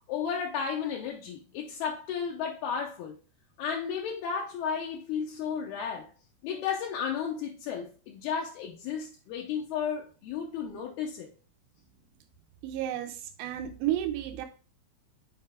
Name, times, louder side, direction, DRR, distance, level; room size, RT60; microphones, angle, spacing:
voice 1, 0.1-3.2 3.6-6.1 6.4-11.3, left 7 dB, 80° left, 2.4 m, -33 dB
voice 2, 12.6-14.5, right 12 dB, 85° right, 2.6 m, -32 dB
7.8 x 4.6 x 3.6 m
omnidirectional pair, 5.3 m